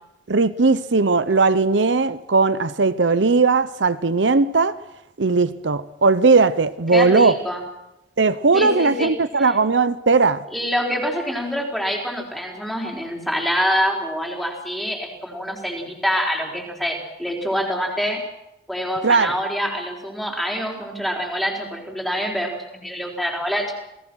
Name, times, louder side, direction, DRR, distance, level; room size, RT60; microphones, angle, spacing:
voice 1, 0.3-4.8 5.2-7.3 8.2-10.4 19.0-19.3, right 4 dB, 85° right, 0.8 m, -18 dB
voice 2, 6.9-7.6 8.5-9.1 9.4-9.5 10.5-18.2 18.7-23.7, equal, ahead, 4.3 m, -26 dB
28.5 x 18.5 x 6.3 m
head